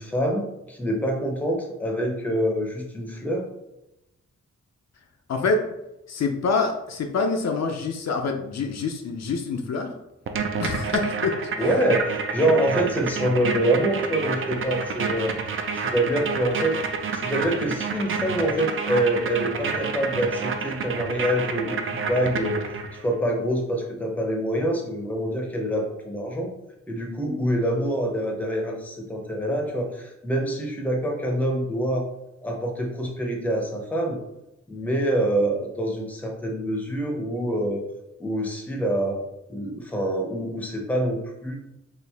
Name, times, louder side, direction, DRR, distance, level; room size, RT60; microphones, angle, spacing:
voice 1, 0.0-3.4 11.6-15.4 15.7-16.8 17.1-22.6 23.0-26.5 26.9-32.1 32.4-34.2 34.7-37.8 38.2-39.2 39.5-41.6, right 1 dB, 5° left, 1 dB, 0.6 m, -25 dB
voice 2, 5.3-5.7 6.1-10.0 10.6-11.4, left 4 dB, 65° left, 4 dB, 0.5 m, -26 dB
sound 1, 10.3-23.1, right 5 dB, 45° right, 0.4 m, -29 dB
4.4 x 2.4 x 3.4 m, 0.90 s
wide cardioid pair, 165°, 29 cm